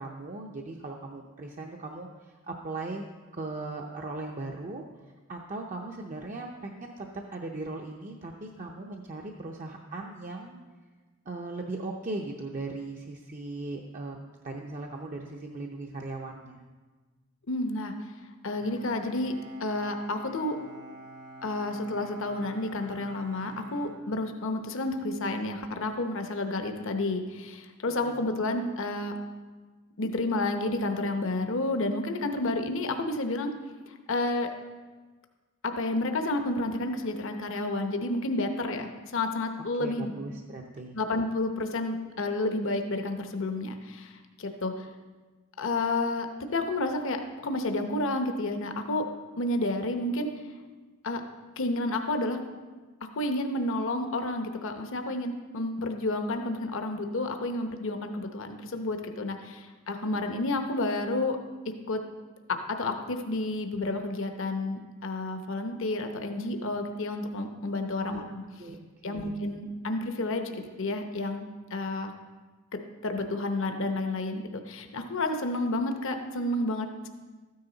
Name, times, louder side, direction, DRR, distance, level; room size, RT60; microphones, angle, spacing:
voice 1, 0.0-3.1 3.3-4.8 5.3-10.6 11.3-14.2 14.4-16.6 27.9-28.2 39.8-41.0 68.0-68.3 68.6-68.8 69.0-69.4, right 2 dB, 35° right, 1 dB, 0.6 m, -38 dB
voice 2, 17.5-17.9 18.4-19.3 19.6-20.6 21.4-29.1 30.0-33.5 33.9-34.5 35.6-40.1 40.9-44.1 44.4-44.9 45.6-49.0 49.4-50.3 51.0-51.2 51.6-52.4 53.2-61.4 61.9-62.0 62.7-68.2 69.0-71.5 71.7-72.1 72.7-77.1, left 2 dB, 60° left, 5 dB, 0.9 m, -30 dB
Bowed string instrument, 18.6-24.8, right 2 dB, 90° right, 3.2 m, -48 dB
13.0 x 9.5 x 4.0 m, 1.3 s
head